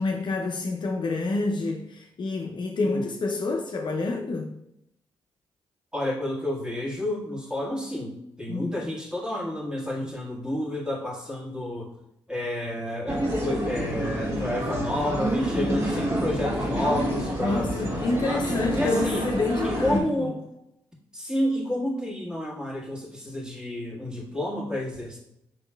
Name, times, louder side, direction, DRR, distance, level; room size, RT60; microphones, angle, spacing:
voice 1, 0.0-4.5 8.5-8.7 15.5-16.0 17.4-20.3, left 3 dB, 50° left, 0.6 m, -28 dB
voice 2, 5.9-11.9 12.3-18.4 18.7-19.2 19.6-20.4 21.1-25.2, left 1 dB, 10° right, 1.6 m, -30 dB
sound 1, 13.1-20.0, right 1 dB, 30° right, 1.7 m, -28 dB
5.7 x 3.6 x 2.3 m
hypercardioid pair, 45°, 10 cm